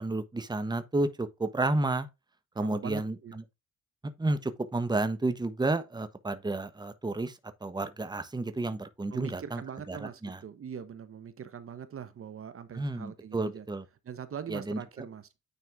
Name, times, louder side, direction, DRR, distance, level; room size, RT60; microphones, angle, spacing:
voice 1, 0.0-2.1 2.6-3.4 4.2-9.6 9.9-10.4 12.7-13.8 14.5-14.8, right 2 dB, 15° right, 1.2 m, -31 dB
voice 2, 2.6-3.4 9.1-13.7 14.0-15.3, right 8 dB, 45° right, 1.0 m, -42 dB
9.6 x 4.2 x 3.5 m
cardioid pair, 90°, 30 cm